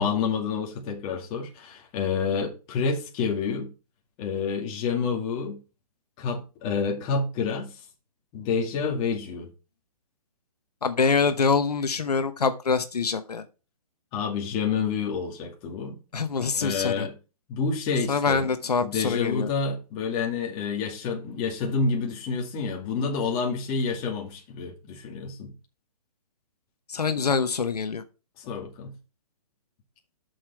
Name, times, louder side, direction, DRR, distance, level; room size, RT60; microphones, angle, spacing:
voice 1, 0.0-3.7 4.2-5.6 6.2-7.8 8.3-9.5 14.1-16.0 16.6-17.2 17.5-18.5 18.8-25.5 28.4-28.9, left 5 dB, 30° left, 2.3 m, -28 dB
voice 2, 10.8-13.4 16.1-17.1 18.1-19.5 26.9-28.0, left 5 dB, 90° left, 0.9 m, -25 dB
7.4 x 6.6 x 4.5 m
hypercardioid pair, 140°, 20 cm